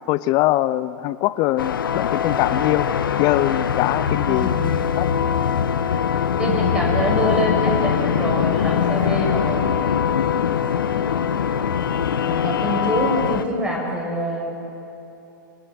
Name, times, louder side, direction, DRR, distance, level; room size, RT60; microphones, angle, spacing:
voice 1, 0.1-2.9 3.2-4.6 5.0-5.1, left 16 dB, 35° left, 17 dB, 0.5 m, -22 dB
sound 1, 1.6-13.5, left 8 dB, 75° left, 1.3 m, -22 dB
voice 2, 4.3-4.7 6.4-9.7 12.2-14.5, equal, 10° right, -2 dB, 6.4 m, -25 dB
27.5 x 19.0 x 8.2 m, 2.9 s
hypercardioid pair, 115°, 11 cm